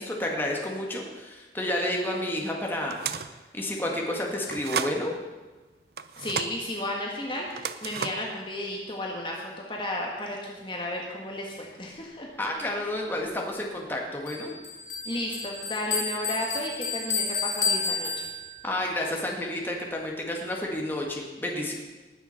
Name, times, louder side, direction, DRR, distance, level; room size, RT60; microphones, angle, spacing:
voice 1, 0.0-3.0 3.5-5.1 12.4-14.5 18.6-21.7, left 1 dB, 10° left, -1 dB, 1.7 m, -30 dB
sound 1, 2.9-3.4 4.5-5.0 6.0-6.6 7.5-8.3, right 7 dB, 60° right, 0.6 m, -33 dB
voice 2, 6.2-12.3 15.0-18.2, left 1 dB, 25° left, -1 dB, 1.5 m, -33 dB
Bell, 14.3-18.8, left 5 dB, 45° left, 2.4 m, -31 dB
19.5 x 7.0 x 5.7 m, 1.2 s
head